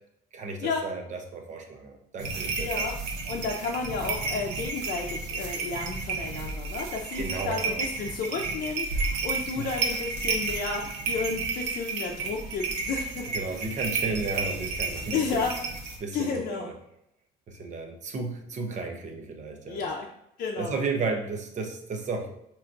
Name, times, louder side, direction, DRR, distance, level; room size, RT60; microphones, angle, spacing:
voice 1, 0.3-2.9 7.2-7.9 9.6-9.7 13.3-15.4 16.0-16.7 17.5-19.9 20.6-22.4, right 3 dB, 45° right, 4 dB, 0.8 m, -33 dB
sound 1, 2.2-16.0, right 4 dB, 90° right, 0.8 m, -32 dB
voice 2, 2.6-2.9 3.2-13.3 15.1-15.5 16.1-16.7 19.7-20.1 20.4-20.8, left 4 dB, 55° left, -1 dB, 0.6 m, -32 dB
5.5 x 3.0 x 2.5 m, 0.78 s
cardioid pair, 110°, 17 cm